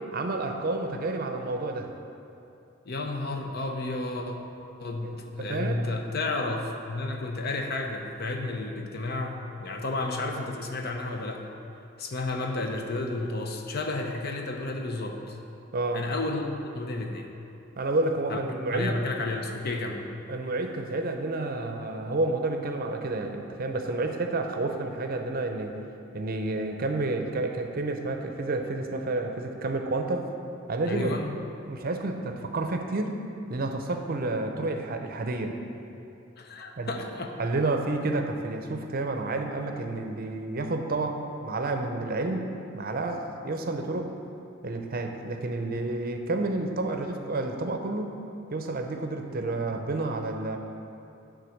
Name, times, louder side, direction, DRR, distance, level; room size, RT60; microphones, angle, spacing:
voice 1, 0.1-1.9 5.0-5.8 15.7-16.0 17.8-18.9 20.3-25.8 26.1-30.3 30.7-31.1 31.6-33.2 33.5-35.6 36.8-36.9 37.4-42.5 42.7-44.1 44.6-48.2 48.5-50.6, right 2 dB, 50° right, 5 dB, 0.6 m, -30 dB
voice 2, 2.9-4.4 4.8-11.5 12.0-15.4 15.9-17.3 18.3-18.4 18.7-20.0 30.9-31.3 36.4-37.3, left 2 dB, 50° left, 3 dB, 0.7 m, -32 dB
9.7 x 3.9 x 6.5 m, 2.9 s
head